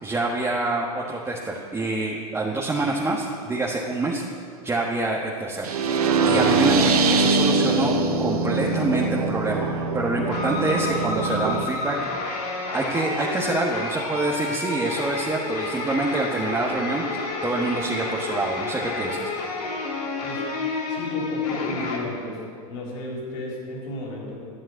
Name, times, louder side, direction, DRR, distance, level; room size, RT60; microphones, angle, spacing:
voice 1, 0.0-4.2 4.6-5.7 6.2-12.4 12.7-19.2, right 2 dB, 15° right, -2 dB, 1.5 m, -26 dB
sound 1, 5.6-11.6, right 3 dB, 85° right, 1.2 m, -22 dB
sound 2, 10.3-22.0, left 3 dB, 85° left, 2.9 m, -30 dB
voice 2, 20.9-22.4 22.7-24.4, left 1 dB, 65° left, -2 dB, 4.2 m, -33 dB
11.0 x 7.4 x 9.6 m, 2.2 s
hypercardioid pair, 110°, 19 cm